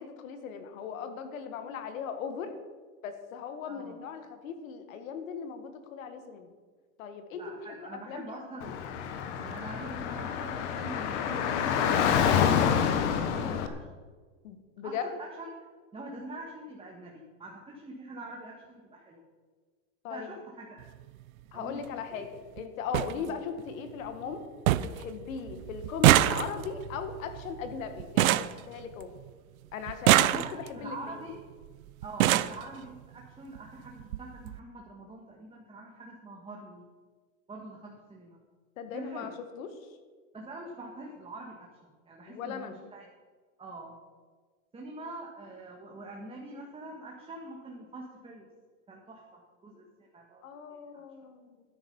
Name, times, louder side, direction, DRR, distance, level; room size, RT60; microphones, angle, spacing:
voice 1, 0.0-2.6 3.0-6.5 7.0-8.8 14.4-15.1 20.0-20.4 21.5-22.3 22.6-24.4 24.8-29.1 29.7-31.2 38.8-39.8 42.3-42.8 50.4-51.6, left 6 dB, 75° left, 8 dB, 1.9 m, -38 dB
voice 2, 7.3-8.7 9.4-14.0 14.8-15.5 15.9-19.2 20.1-20.8 21.5-21.8 22.1-22.3 23.1-23.2 30.1-31.4 32.0-36.8 37.5-38.4 38.9-39.3 40.3-41.7 42.0-43.0 43.6-44.0 44.7-48.5 48.9-51.0, right 2 dB, 15° right, -1 dB, 1.6 m, -44 dB
Car / Traffic noise roadway noise, 8.6-13.7, left 8 dB, 60° left, 1.4 m, -27 dB
sound 1, 20.8-21.0 22.2-22.3 22.6-22.7 22.9-23.1 23.6-24.1 24.3-24.4 24.7-25.0 25.3-29.3 29.9-30.8 31.6-31.7 32.0-32.6 33.6-33.7 34.0-34.2 34.5-34.6, right 14 dB, 80° right, 0.7 m, -25 dB
13.0 x 10.0 x 5.5 m, 1.5 s
supercardioid pair, 135°, 41 cm